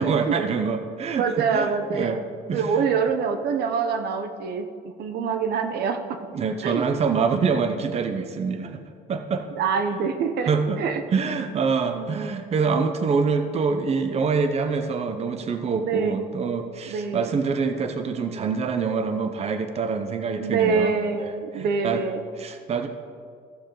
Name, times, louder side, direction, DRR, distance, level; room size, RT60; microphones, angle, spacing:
voice 1, 0.0-1.3 1.5-2.2 2.5-2.8 6.3-8.8 9.1-9.5 10.5-10.8 11.1-22.0 22.4-22.9, right 5 dB, 40° right, 7 dB, 0.7 m, -25 dB
voice 2, 1.2-2.2 2.5-6.2 6.6-6.9 9.6-10.5 10.8-11.0 11.9-12.3 15.8-16.2 16.9-17.3 20.4-22.2, right 5 dB, 70° right, 8 dB, 0.9 m, -25 dB
15.0 x 6.8 x 3.9 m, 2.2 s
cardioid pair, 110°, 17 cm